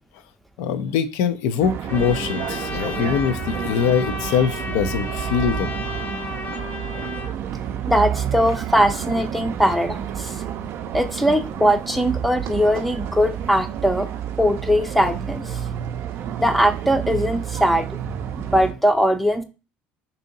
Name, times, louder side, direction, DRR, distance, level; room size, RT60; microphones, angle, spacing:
voice 1, 0.6-5.7, left 7 dB, 75° left, 10 dB, 0.4 m, -23 dB
sound 1, 1.6-18.7, right 9 dB, 55° right, 0.4 m, -30 dB
Trumpet, 1.9-7.3, left 4 dB, 40° left, 0.7 m, -33 dB
voice 2, 7.9-10.4 10.9-14.1 14.4-15.8 16.4-18.0 18.3-19.4, equal, ahead, 6 dB, 0.5 m, -20 dB
2.7 x 2.7 x 3.8 m, 0.30 s
supercardioid pair, 85°, 5 cm